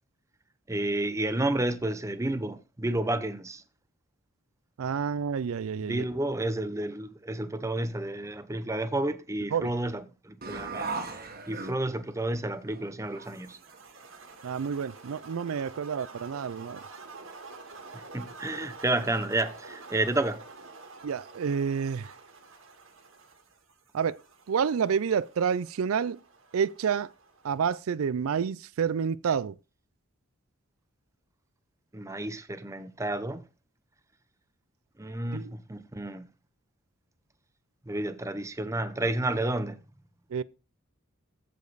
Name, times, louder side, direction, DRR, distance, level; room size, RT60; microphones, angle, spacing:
voice 1, 0.7-3.6 5.8-11.2 11.5-13.6 17.9-20.4 31.9-33.4 35.0-36.3 37.9-39.8, right 2 dB, 15° right, 0.7 m, -31 dB
voice 2, 4.8-6.0 9.5-9.7 14.4-16.8 21.0-22.1 23.9-24.2 24.5-26.2 26.5-27.1 27.4-29.6 35.3-35.5 40.3-40.4, right 7 dB, 90° right, 0.4 m, -29 dB
sound 1, 10.4-12.2 12.7-12.8 13.1-14.4, right 4 dB, 45° right, 1.5 m, -38 dB
sound 2, 13.2-27.6, right 3 dB, 70° right, 1.8 m, -48 dB
15.0 x 5.2 x 4.0 m
head